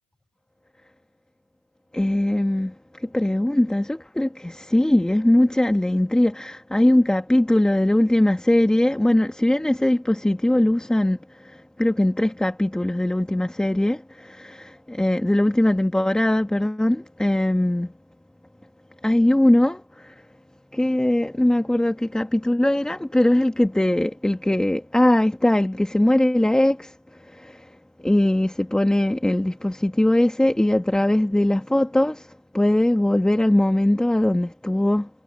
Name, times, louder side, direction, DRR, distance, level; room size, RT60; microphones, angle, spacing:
voice 1, 1.9-2.7 3.0-11.2 11.4-17.9 19.0-20.1 20.7-26.9 27.3-27.6 28.0-32.3 32.5-35.1, left 1 dB, 5° left, 1.9 m, -20 dB
supercardioid pair, 120°, 21 cm